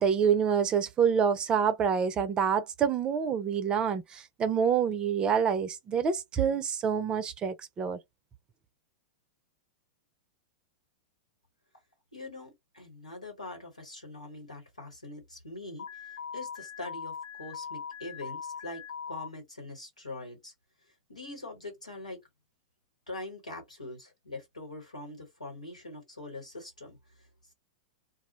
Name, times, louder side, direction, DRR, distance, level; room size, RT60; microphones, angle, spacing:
voice 1, 0.0-8.0, right 7 dB, 25° right, 0.5 m, -27 dB
voice 2, 12.1-15.9 16.3-20.5 21.1-22.2 23.1-27.5, left 2 dB, 90° left, 1.4 m, -43 dB
Alarm, 15.8-19.3, left 7 dB, 65° left, 0.9 m, -40 dB
2.3 x 2.1 x 3.0 m
figure-of-eight pair, 100°, 4 cm